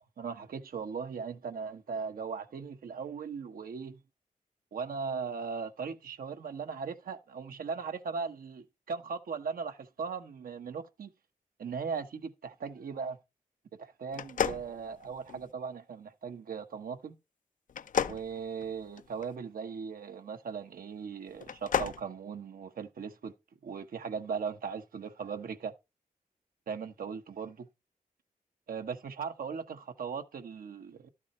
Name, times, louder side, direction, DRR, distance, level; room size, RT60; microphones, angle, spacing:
voice 1, 0.2-4.0 4.7-11.1 11.6-13.2 13.8-17.2 18.1-23.3 23.6-25.7 26.7-27.7 28.7-31.1, right 6 dB, 85° right, 1.1 m, -38 dB
sound 1, 14.1-15.5 17.7-19.3 21.3-22.0, left 8 dB, 65° left, 0.5 m, -33 dB
12.0 x 7.3 x 4.3 m
wide cardioid pair, 90°, 14 cm